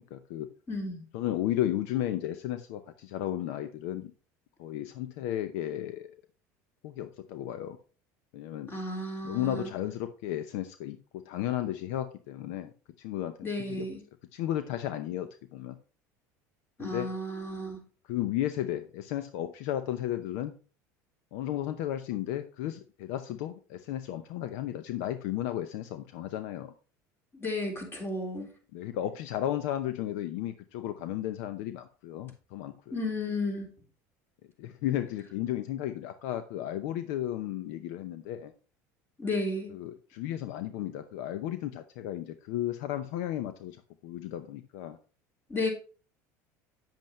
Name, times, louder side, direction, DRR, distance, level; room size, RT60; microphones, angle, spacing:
voice 1, 0.0-0.5 1.1-4.1 4.6-6.1 6.8-7.8 8.3-8.7 9.2-12.7 13.0-13.9 14.3-15.8 16.8-17.1 18.1-20.5 21.3-26.7 28.7-32.9 34.6-38.5 39.7-43.8 44.0-45.0, left 12 dB, 75° left, 11 dB, 0.7 m, -34 dB
voice 2, 0.7-1.1 8.7-9.7 13.4-14.0 16.8-17.8 27.3-28.5 32.9-33.7 39.2-39.7 45.5-45.7, left 2 dB, 25° left, 1 dB, 3.6 m, -33 dB
9.0 x 7.7 x 3.1 m, 0.37 s
supercardioid pair, 90°, 9 cm